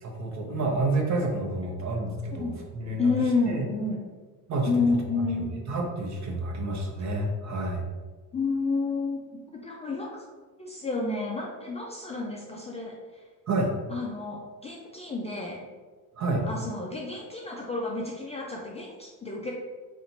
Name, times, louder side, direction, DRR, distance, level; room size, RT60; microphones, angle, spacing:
voice 1, 0.0-3.1 3.5-3.6 4.5-4.7 5.4-7.8 13.5-13.7 16.2-16.5, right 2 dB, 45° right, 1 dB, 0.9 m, -29 dB
voice 2, 3.0-4.0 4.7-5.5 8.3-10.2 10.6-13.2 13.9-15.6 16.5-19.5, left 3 dB, 15° left, -2 dB, 0.4 m, -30 dB
4.3 x 2.6 x 3.9 m, 1.4 s
cardioid pair, 125°, 39 cm